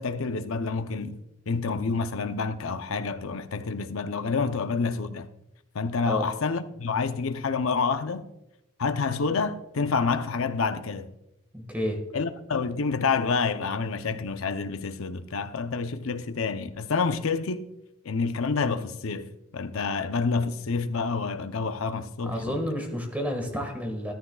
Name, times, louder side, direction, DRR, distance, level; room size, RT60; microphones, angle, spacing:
voice 1, 0.0-5.3 5.7-8.3 8.8-11.1 12.1-17.6 18.0-22.6, left 4 dB, 65° left, 0.6 m, -28 dB
voice 2, 11.5-12.0 22.2-24.1, equal, 5° right, 1.6 m, -30 dB
13.5 x 12.5 x 2.3 m
head